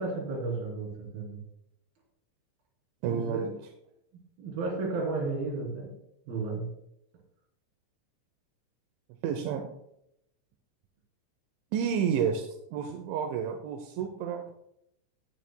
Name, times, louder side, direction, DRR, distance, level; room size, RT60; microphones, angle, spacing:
voice 1, 0.0-1.4 3.0-3.5 4.4-5.9 6.3-6.7, right 3 dB, 55° right, -2 dB, 4.6 m, -33 dB
voice 2, 3.0-3.5 9.2-9.6 11.7-14.4, right 7 dB, 85° right, 4 dB, 3.1 m, -30 dB
16.5 x 8.4 x 2.2 m, 0.80 s
omnidirectional pair, 5.3 m